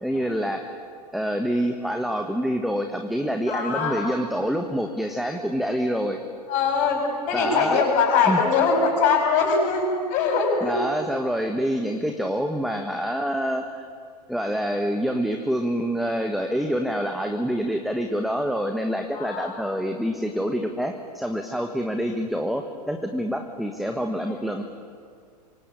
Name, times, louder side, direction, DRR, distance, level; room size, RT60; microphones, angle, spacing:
voice 1, 0.0-0.8 1.1-6.2 7.3-7.8 8.2-8.4 10.6-13.9 14.3-24.6, equal, ahead, 5 dB, 1.5 m, -26 dB
voice 2, 3.5-4.0 6.5-10.8 19.1-19.5 24.3-24.4, left 5 dB, 35° left, 1 dB, 7.6 m, -22 dB
27.5 x 24.5 x 8.6 m, 2.2 s
figure-of-eight pair, 100°, 21 cm